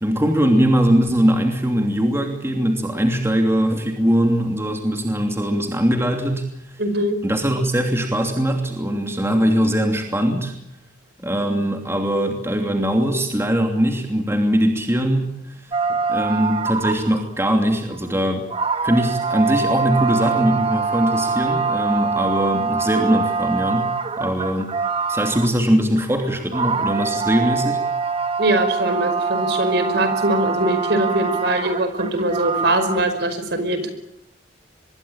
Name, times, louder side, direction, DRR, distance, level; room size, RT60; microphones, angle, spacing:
voice 1, 0.0-6.8 7.2-10.5 11.2-15.7 16.1-18.4 18.8-24.7 25.1-27.8, equal, 15° right, 3 dB, 2.8 m, -21 dB
voice 2, 6.8-7.2 28.4-33.9, right 1 dB, 55° right, 10 dB, 5.2 m, -22 dB
sound 1, 15.7-17.3 17.9-18.0 18.5-25.7 26.0-33.0, right 4 dB, 30° right, 1.7 m, -24 dB
25.0 x 22.5 x 8.9 m, 0.78 s
head